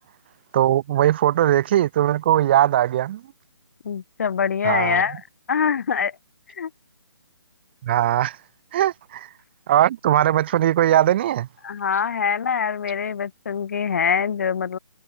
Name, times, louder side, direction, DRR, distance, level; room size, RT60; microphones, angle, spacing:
voice 1, 0.5-3.2 4.6-5.0 7.8-8.4 8.7-9.3 9.7-11.5, right 12 dB, 25° right, 1.2 m, -20 dB
voice 2, 3.8-5.2 5.5-6.2 6.6-6.7 11.6-14.8, left 6 dB, 35° left, 0.7 m, -24 dB
hypercardioid pair, 170°, 14 cm